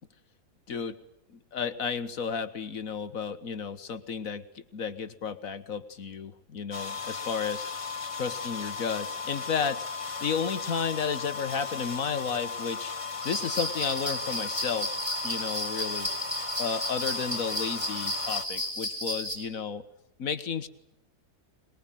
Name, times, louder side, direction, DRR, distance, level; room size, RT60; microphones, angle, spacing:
voice 1, 1.3-7.7 8.1-9.8 10.2-12.9 13.2-15.0 15.2-16.1 16.6-19.8 20.2-20.7, left 6 dB, 60° left, 12 dB, 1.7 m, -32 dB
sound 1, 6.7-18.4, left 4 dB, 20° left, 1.4 m, -36 dB
sound 2, 13.2-19.4, left 1 dB, 20° right, 5.9 m, -33 dB
22.5 x 21.5 x 9.1 m, 0.84 s
omnidirectional pair, 1.6 m